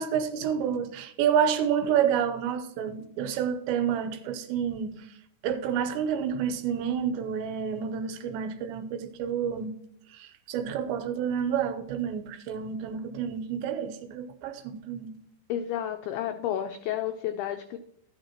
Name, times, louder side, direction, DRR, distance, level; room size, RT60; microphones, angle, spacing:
voice 1, 0.0-5.1 5.4-9.8 10.1-15.1, right 8 dB, 80° right, 3.0 m, -29 dB
voice 2, 15.5-17.8, left 11 dB, 90° left, 2.2 m, -31 dB
13.0 x 9.3 x 2.9 m
omnidirectional pair, 5.3 m